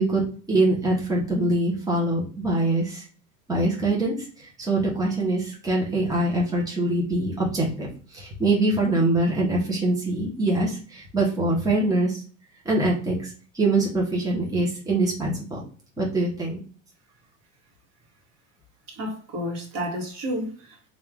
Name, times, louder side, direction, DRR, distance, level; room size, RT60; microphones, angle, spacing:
voice 1, 0.0-3.0 3.5-7.9 8.1-12.2 12.6-13.2 13.5-15.6 16.0-16.6, right 2 dB, 10° right, 1.2 m, -24 dB
voice 2, 18.9-20.9, equal, 40° right, 1.6 m, -31 dB
3.4 x 2.8 x 3.5 m
supercardioid pair, 130°, 41 cm